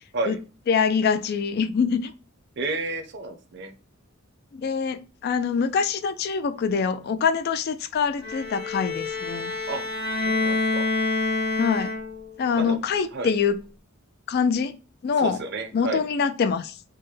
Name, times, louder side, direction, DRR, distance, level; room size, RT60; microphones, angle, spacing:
voice 1, 0.7-2.1 4.5-9.6 11.6-11.9 12.4-13.6 14.3-14.8 15.0-15.4 15.7-16.8, left 6 dB, 50° left, 0.3 m, -24 dB
voice 2, 2.6-3.7 9.7-9.8 10.2-10.9 12.6-12.8 13.1-13.3 15.2-16.0, right 2 dB, 55° right, 0.7 m, -31 dB
Bowed string instrument, 8.2-12.4, left 3 dB, 75° left, 1.5 m, -27 dB
4.5 x 2.1 x 3.1 m
head